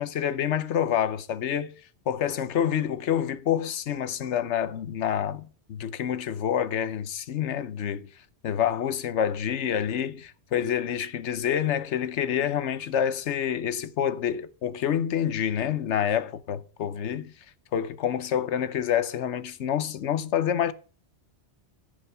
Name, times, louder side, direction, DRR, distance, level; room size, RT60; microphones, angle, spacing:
voice 1, 0.0-1.7 2.1-5.4 5.7-8.1 8.4-17.3 17.7-20.7, left 9 dB, 80° left, 1.1 m, -27 dB
14.5 x 5.2 x 6.5 m
omnidirectional pair, 1.2 m